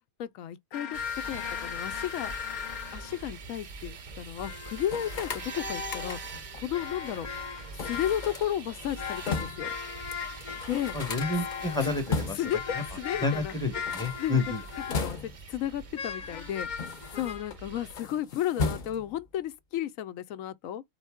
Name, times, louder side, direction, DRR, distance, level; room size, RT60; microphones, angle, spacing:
voice 1, 0.2-1.0 1.2-2.3 2.9-6.2 6.5-7.3 7.8-9.7 10.7-11.0 11.8-11.9 12.3-13.5 14.2-14.4 15.0-16.7 17.1-20.8, left 11 dB, 90° left, 1.0 m, -33 dB
sound 1, 0.7-3.3 4.4-6.3 6.7-8.5 8.9-15.1 16.0-17.5, left 7 dB, 70° left, 0.4 m, -38 dB
sound 2, 0.9-17.9, right 5 dB, 55° right, 0.4 m, -44 dB
sound 3, 4.9-6.5 7.8-9.7 10.1-10.2 10.4-12.6 13.7-15.6 16.3-17.6 17.9-19.2, left 4 dB, 45° left, 0.8 m, -36 dB
voice 2, 10.9-12.4 12.7-12.8 13.2-14.6, left 3 dB, 5° left, 0.9 m, -29 dB
4.0 x 3.7 x 3.5 m
omnidirectional pair, 1.4 m